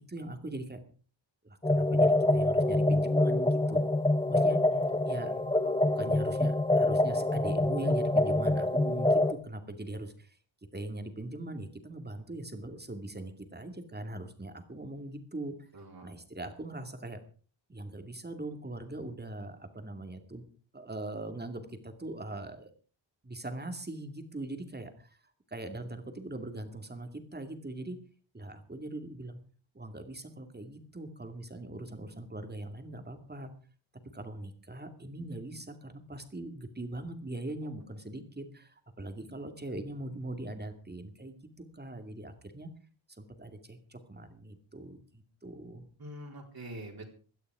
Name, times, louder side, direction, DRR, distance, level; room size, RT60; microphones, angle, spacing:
voice 1, 0.1-0.8 1.4-3.9 4.3-4.6 5.0-5.3 5.6-10.4 10.7-15.7 16.0-17.2 17.7-20.5 20.7-22.7 23.2-25.2 25.5-28.0 28.3-29.4 29.7-33.5 34.1-41.4 41.7-42.7 43.2-45.9, right 1 dB, 20° right, 7 dB, 2.4 m, -41 dB
sound 1, 1.6-9.3, left 1 dB, 10° left, 1.0 m, -26 dB
voice 2, 15.7-16.1 46.0-47.1, right 1 dB, 50° right, -1 dB, 4.0 m, -44 dB
17.0 x 12.5 x 4.9 m, 0.39 s
wide cardioid pair, 135°, 47 cm